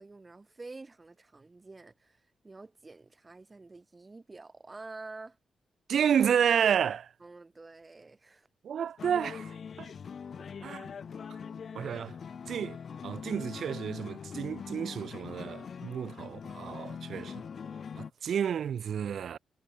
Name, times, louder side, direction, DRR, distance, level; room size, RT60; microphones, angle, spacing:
voice 1, 0.0-5.4 7.2-8.5, right 3 dB, 25° right, 4.1 m, -48 dB
voice 2, 5.9-7.1 8.6-9.9 10.6-10.9 11.7-12.1 12.5-12.8 13.0-17.4 18.0-19.4, right 8 dB, 70° right, 0.4 m, -30 dB
sound 1, 9.0-18.1, left 6 dB, 55° left, 2.8 m, -42 dB
cardioid pair, 85°, 0 cm